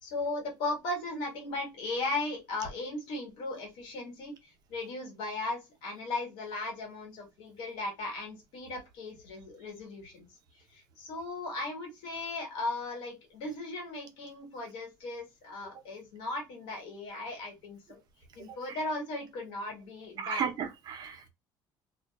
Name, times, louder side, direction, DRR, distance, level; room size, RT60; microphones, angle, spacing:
voice 1, 0.0-10.3 10.5-18.0 18.3-20.5, left 2 dB, 90° left, 1.4 m, -37 dB
voice 2, 20.2-21.3, right 7 dB, 55° right, 0.7 m, -34 dB
2.5 x 2.3 x 2.2 m
cardioid pair, 110°, 8 cm